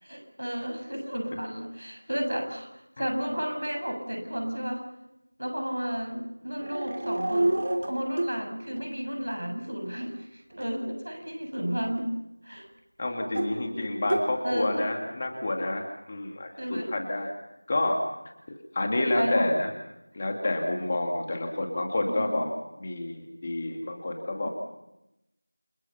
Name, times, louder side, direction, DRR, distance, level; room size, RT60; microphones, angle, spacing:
voice 1, 0.0-2.7 3.0-4.8 5.4-12.1 12.4-12.7 14.4-14.9 16.6-16.9 18.9-19.5 22.0-22.3, equal, 65° right, 4 dB, 7.3 m, -32 dB
sound 1, 6.6-8.3 8.8-8.9 10.5-10.7 11.9-12.0 13.3-13.5 14.0-14.3, right 1 dB, 35° right, 2.8 m, -28 dB
voice 2, 13.0-17.3 17.7-18.0 18.5-19.7 20.1-22.5 22.8-24.5, left 2 dB, 20° left, 2 dB, 2.4 m, -29 dB
29.0 x 24.5 x 5.8 m, 0.88 s
figure-of-eight pair, 175°, 0 cm